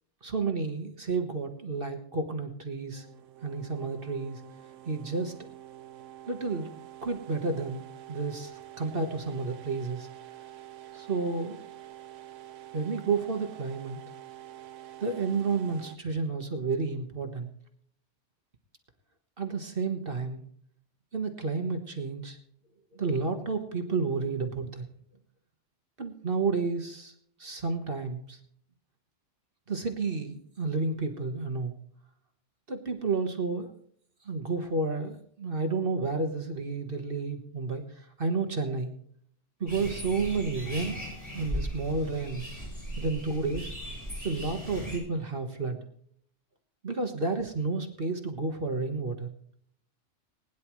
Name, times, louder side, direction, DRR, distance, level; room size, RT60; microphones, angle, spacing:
voice 1, 0.2-3.0 3.4-4.4 4.8-5.3 6.3-6.7 7.0-7.8 8.1-10.1 10.9-11.6 12.7-14.0 15.0-17.5 19.4-20.4 21.1-22.4 22.9-24.8 26.0-27.1 27.4-28.4 29.7-31.7 32.7-33.7 34.2-38.9 39.6-41.0 41.3-42.5 43.0-43.7 44.2-45.8 46.8-49.3, right 4 dB, 45° right, 5 dB, 1.6 m, -31 dB
sound 1, 2.9-16.0, right 13 dB, 75° right, 1.0 m, -47 dB
sound 2, 39.7-45.0, equal, 20° left, 6.8 m, -38 dB
20.5 x 10.5 x 3.1 m, 0.63 s
omnidirectional pair, 1.3 m